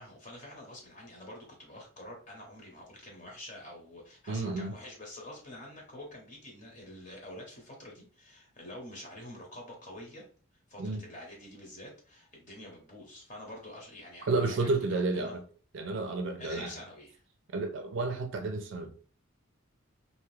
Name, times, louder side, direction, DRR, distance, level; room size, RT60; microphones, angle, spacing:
voice 1, 0.0-10.3 10.7-15.4 16.4-17.2, left 1 dB, 35° left, 0.8 m, -47 dB
voice 2, 4.3-4.7 10.8-11.0 14.3-15.4 15.7-16.7 17.5-19.0, right 3 dB, 60° right, 0.4 m, -31 dB
2.6 x 2.3 x 3.1 m
head